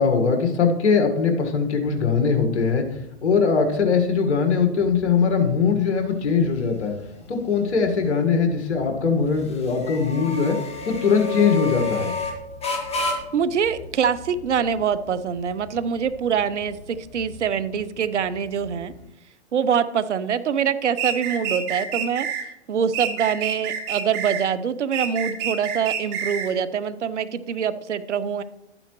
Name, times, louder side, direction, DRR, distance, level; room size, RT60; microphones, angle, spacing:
voice 1, 0.0-2.9 3.2-6.9 7.3-10.6 10.9-12.1, left 5 dB, 75° left, 5 dB, 1.7 m, -21 dB
sound 1, 1.9-19.1, left 3 dB, 15° left, 1.7 m, -35 dB
voice 2, 13.3-18.9 19.5-22.3 22.7-28.4, right 7 dB, 85° right, 14 dB, 0.7 m, -24 dB
sound 2, 21.0-22.4 22.9-24.5 24.9-26.5, right 7 dB, 40° right, 1.6 m, -28 dB
11.5 x 8.8 x 3.1 m, 0.86 s
hypercardioid pair, 115°, 34 cm